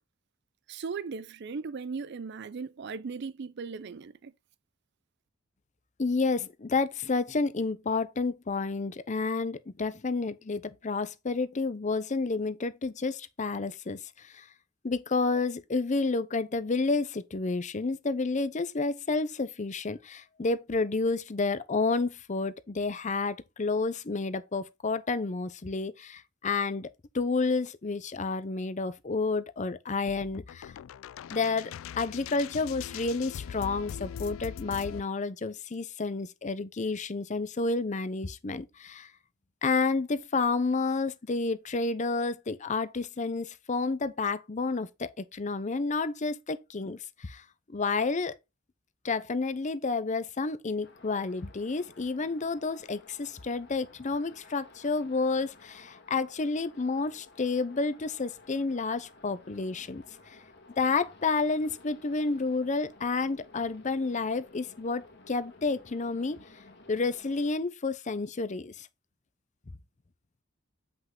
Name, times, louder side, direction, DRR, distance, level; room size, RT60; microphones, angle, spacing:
voice 1, 0.7-4.3, right 5 dB, 55° right, 0.5 m, -37 dB
voice 2, 6.0-14.5 14.8-26.9 27.1-30.7 31.3-39.1 39.6-47.4 47.7-48.4 49.0-60.0 60.8-66.4 66.9-68.9, left 3 dB, 35° left, 0.6 m, -30 dB
sound 1, 30.0-35.0, left 8 dB, 75° left, 0.3 m, -41 dB
sound 2, 50.8-67.5, left 3 dB, 55° left, 1.8 m, -55 dB
8.0 x 5.7 x 3.7 m
head